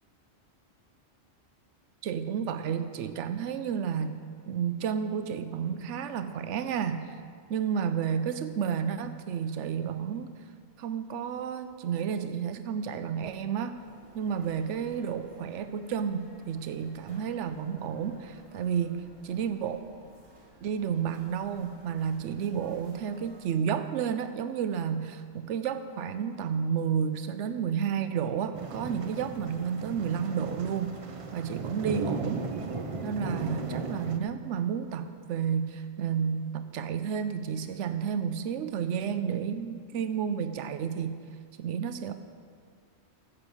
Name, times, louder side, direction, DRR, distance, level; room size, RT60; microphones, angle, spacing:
voice 1, 2.0-4.2 4.5-7.2 7.5-10.3 10.8-13.8 14.1-19.8 20.6-31.0 31.3-32.5 33.0-41.2 41.6-42.2, right 7 dB, 85° right, 10 dB, 0.9 m, -31 dB
sound 1, 13.7-23.4, equal, 55° right, 2.9 m, -56 dB
sound 2, 28.5-34.2, right 3 dB, 35° right, 0.6 m, -36 dB
10.5 x 8.1 x 7.0 m, 2.1 s
omnidirectional pair, 1.2 m